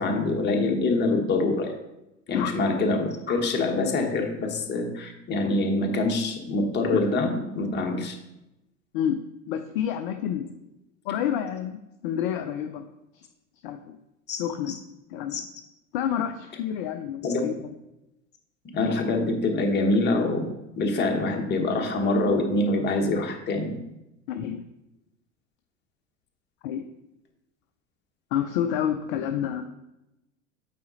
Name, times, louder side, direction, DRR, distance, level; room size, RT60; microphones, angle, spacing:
voice 1, 0.0-1.7 2.3-8.1 14.3-14.4 15.3-15.4 17.2-17.4 18.7-23.8, left 2 dB, 25° left, 3 dB, 1.3 m, -25 dB
voice 2, 9.5-10.6 11.0-12.8 13.1-13.3 13.6-14.0 14.4-14.8 15.1-15.4 15.9-17.5 24.3-24.6 26.6-26.8 28.3-29.6, left 9 dB, 45° left, 7 dB, 0.6 m, -29 dB
8.4 x 4.2 x 4.0 m, 0.92 s
figure-of-eight pair, 85°, 39 cm